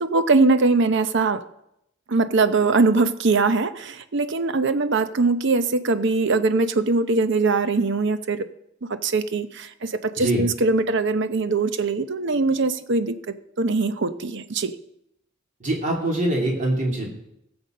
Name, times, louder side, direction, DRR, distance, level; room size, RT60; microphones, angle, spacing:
voice 1, 0.0-1.4 2.1-8.4 9.0-13.1 13.6-14.7, right 3 dB, 65° right, 11 dB, 0.7 m, -21 dB
voice 2, 15.6-17.1, right 1 dB, 40° right, -1 dB, 3.0 m, -23 dB
17.0 x 7.1 x 5.3 m, 0.79 s
head